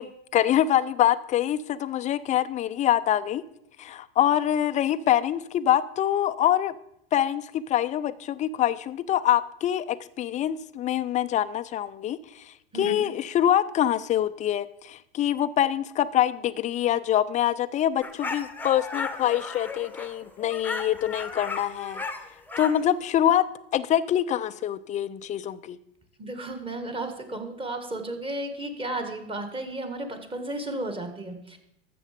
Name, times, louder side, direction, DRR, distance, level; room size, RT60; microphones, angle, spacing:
voice 1, 0.0-3.4 3.8-6.7 7.1-12.4 12.7-22.0 22.6-23.4 23.7-25.8, left 11 dB, 25° left, 15 dB, 0.4 m, -25 dB
voice 2, 12.7-13.1 26.2-31.6, right 2 dB, 15° right, 6 dB, 1.7 m, -33 dB
sound 1, 18.0-22.8, left 3 dB, 5° left, 1.0 m, -35 dB
12.5 x 7.7 x 5.1 m, 0.79 s
hypercardioid pair, 115°, 31 cm